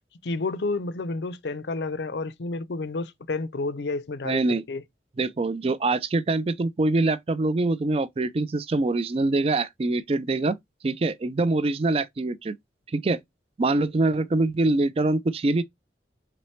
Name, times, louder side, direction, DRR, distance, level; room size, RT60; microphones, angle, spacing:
voice 1, 0.2-4.8, left 3 dB, 75° left, 0.6 m, -30 dB
voice 2, 4.2-4.6 5.2-10.6 10.8-12.5 12.9-13.2 13.6-15.6, right 2 dB, 35° right, 0.4 m, -24 dB
4.3 x 3.9 x 3.1 m
head